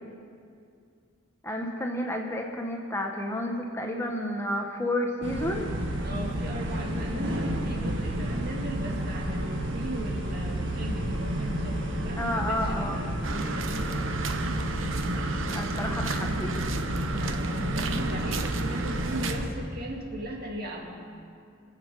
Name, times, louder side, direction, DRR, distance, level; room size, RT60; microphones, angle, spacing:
voice 1, 1.4-5.7 12.2-13.0 15.5-16.6, left 1 dB, 15° left, 2 dB, 1.0 m, -31 dB
sound 1, 5.2-19.5, right 1 dB, 70° right, 1.6 m, -31 dB
voice 2, 6.0-13.7 17.1-20.9, right 1 dB, 50° right, 0 dB, 2.1 m, -38 dB
sound 2, 13.2-19.4, right 3 dB, 90° right, 0.9 m, -34 dB
23.5 x 8.3 x 5.4 m, 2.3 s
head